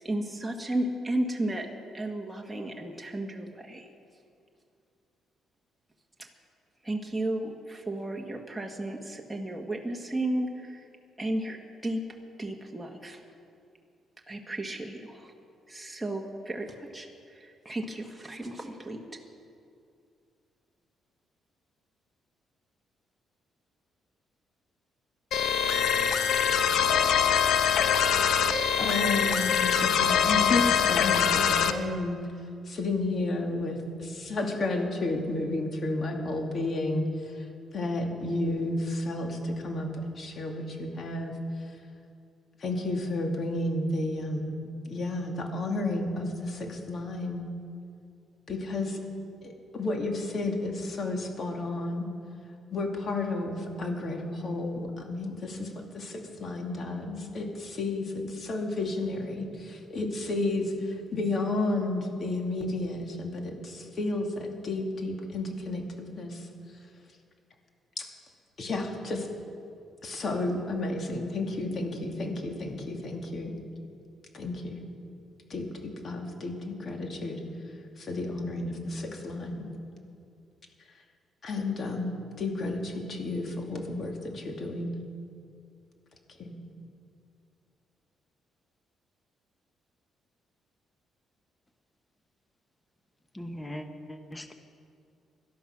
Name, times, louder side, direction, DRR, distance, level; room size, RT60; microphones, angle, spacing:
voice 1, 0.0-1.7 1.9-3.9 6.2-6.3 6.8-10.9 11.2-12.0 12.4-13.2 14.3-15.3 15.7-19.0, right 1 dB, 10° right, 0 dB, 1.6 m, -33 dB
sound 1, 25.3-31.7, left 7 dB, 75° left, 0.9 m, -24 dB
voice 2, 28.8-32.2 32.7-37.3 37.7-41.4 42.6-44.5 44.9-47.5 48.5-49.0 49.4-52.1 52.7-66.5 68.0-68.1 68.6-69.3 70.0-73.5 74.3-74.8 75.5-77.4 78.0-79.6 81.4-84.9 86.4-86.5, left 2 dB, 50° left, 2 dB, 2.4 m, -32 dB
voice 3, 93.3-94.5, equal, 15° left, 7 dB, 1.1 m, -40 dB
17.5 x 12.0 x 6.0 m, 2.4 s
cardioid pair, 90°, 0 cm